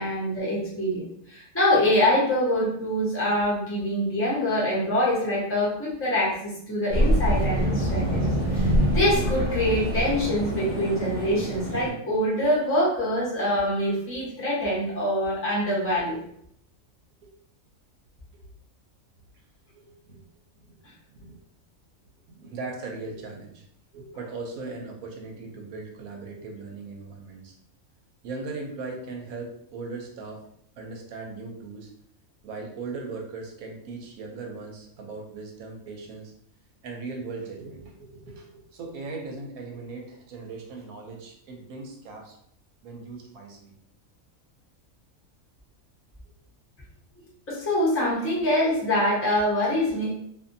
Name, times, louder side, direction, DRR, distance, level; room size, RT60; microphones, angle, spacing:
voice 1, 0.0-16.2 47.5-50.1, left 1 dB, 10° left, -6 dB, 0.7 m, -25 dB
sound 1, 6.9-11.9, equal, 35° right, 1.1 m, -25 dB
voice 2, 19.7-20.2 20.6-20.7 21.1-21.4 22.3-23.6 23.9-27.5 28.2-30.4 30.8-31.9 32.4-36.3 36.8-42.4 42.8-43.7 46.2-46.3, right 3 dB, 80° right, 1 dB, 1.1 m, -38 dB
2.6 x 2.5 x 2.6 m, 0.72 s
omnidirectional pair, 1.5 m